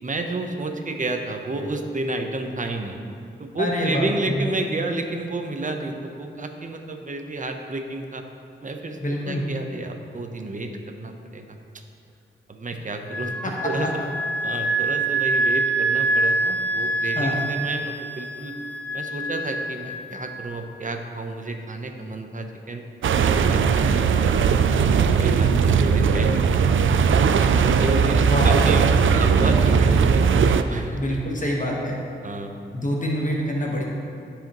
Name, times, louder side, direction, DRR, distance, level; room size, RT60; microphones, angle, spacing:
voice 1, 0.0-3.0 3.4-8.2 8.6-11.6 12.5-14.0 14.4-18.6 18.9-22.9 23.2-24.4 24.9-27.0 27.3-28.8 29.1-30.3 30.7-31.2 32.2-32.6, right 2 dB, 40° right, 5 dB, 0.8 m, -31 dB
voice 2, 3.6-4.5 9.0-9.5 13.4-13.5 17.2-17.4 28.2-28.7 30.9-32.0 32.7-33.8, equal, 40° left, -2 dB, 1.2 m, -25 dB
Wind instrument woodwind instrument, 13.1-20.5, right 2 dB, 5° left, 0.5 m, -26 dB
sound 1, 23.0-30.6, right 6 dB, 75° right, 0.4 m, -18 dB
13.5 x 4.9 x 3.0 m, 2.6 s
cardioid pair, 55°, 20 cm